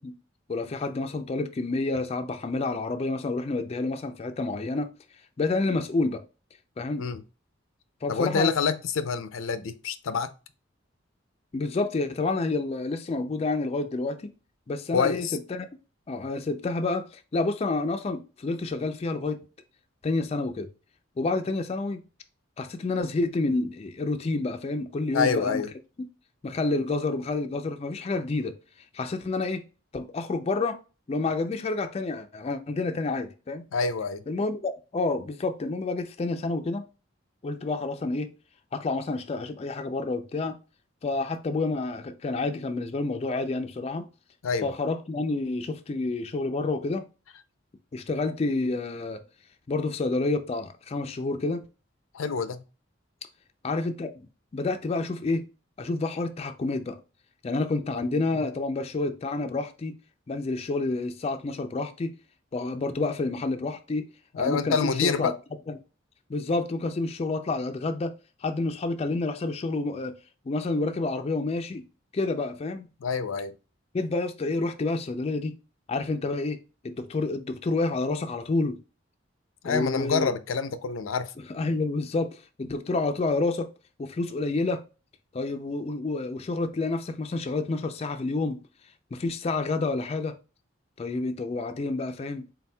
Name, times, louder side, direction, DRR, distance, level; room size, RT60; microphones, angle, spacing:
voice 1, 0.5-4.9 5.4-6.2 6.8-7.0 8.0-8.5 11.5-14.2 14.7-15.7 16.1-19.4 20.0-20.7 21.2-22.0 22.6-25.6 26.4-28.5 28.9-29.6 29.9-30.8 31.1-33.6 34.3-36.8 37.4-38.3 38.7-40.6 41.0-44.1 44.6-47.1 47.9-49.2 49.7-51.6 53.6-54.3 54.5-55.4 55.8-57.0 57.4-59.9 60.3-62.1 62.5-64.1 64.4-65.3 65.7-65.8 66.3-68.1 68.4-70.1 70.5-71.8 72.1-72.9 73.9-75.5 75.9-76.6 76.8-78.8 79.6-80.3 81.5-83.7 84.0-84.8 85.3-88.6 89.1-90.3 91.0-92.4, left 3 dB, 30° left, 0.4 m, -29 dB
voice 2, 8.1-10.3 14.9-15.4 25.1-25.7 33.7-34.2 44.4-44.7 52.1-52.6 64.3-65.3 73.0-73.5 79.6-81.3, left 5 dB, 90° left, 0.5 m, -27 dB
4.2 x 3.9 x 2.2 m
head